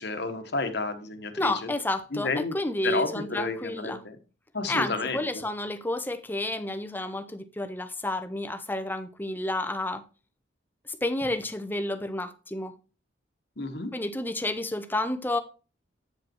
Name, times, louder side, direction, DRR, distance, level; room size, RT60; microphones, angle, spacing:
voice 1, 0.0-1.7 2.1-2.5 2.8-4.2 4.5-5.4 13.6-13.9, left 3 dB, 55° left, 1.2 m, -31 dB
voice 2, 1.4-4.0 4.7-10.0 11.0-12.7 13.9-15.4, left 1 dB, 10° left, 0.7 m, -30 dB
8.7 x 5.2 x 4.6 m
head